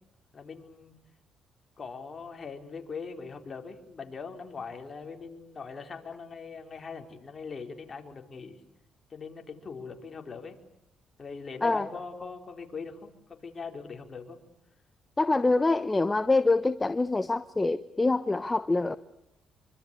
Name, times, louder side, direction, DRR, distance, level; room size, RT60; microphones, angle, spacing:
voice 1, 0.3-0.9 1.8-8.6 9.1-10.6 11.2-14.4, left 5 dB, 35° left, 4.5 m, -41 dB
voice 2, 15.2-19.0, left 3 dB, 20° left, 1.0 m, -25 dB
26.5 x 24.5 x 8.5 m
cardioid pair, 90°, 0 cm